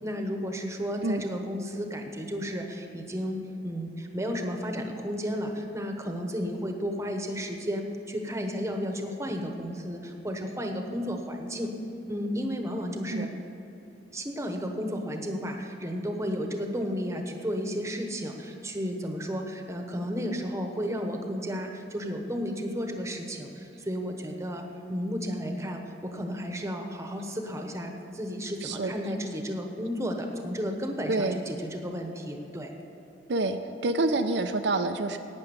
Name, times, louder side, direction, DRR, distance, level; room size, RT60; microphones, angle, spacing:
voice 1, 0.0-11.7 12.1-13.3 14.1-32.7, equal, 15° right, 4 dB, 1.1 m, -33 dB
voice 2, 28.6-28.9 31.1-31.4 33.3-33.6 33.8-35.2, right 2 dB, 70° right, 7 dB, 0.6 m, -27 dB
11.5 x 8.9 x 7.0 m, 3.0 s
head